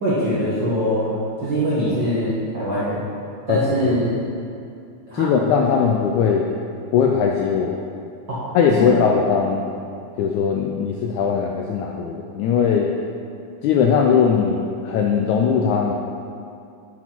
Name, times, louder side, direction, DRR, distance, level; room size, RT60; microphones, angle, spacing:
voice 1, 0.0-3.0 3.5-4.2 5.1-5.3 8.3-8.4 8.8-9.0, equal, 50° right, -9 dB, 1.3 m, -22 dB
voice 2, 5.1-6.5 6.9-7.8 8.5-9.6 10.2-12.9 13.6-15.9, left 6 dB, 80° left, 1 dB, 1.7 m, -19 dB
9.8 x 6.2 x 4.5 m, 2.4 s
omnidirectional pair, 3.9 m